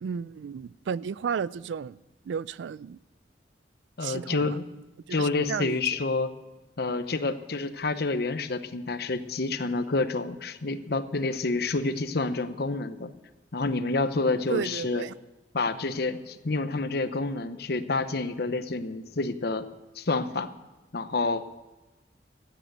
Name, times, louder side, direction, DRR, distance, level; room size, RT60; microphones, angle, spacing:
voice 1, 0.0-2.0 2.3-3.0 4.0-4.6 5.1-5.8 14.5-15.1, right 6 dB, 85° right, 0.3 m, -33 dB
voice 2, 4.0-4.6 5.1-6.3 6.8-13.1 13.5-15.0 15.5-19.7 19.9-20.5 20.9-21.4, left 3 dB, 60° left, 0.8 m, -28 dB
13.5 x 9.1 x 7.9 m
head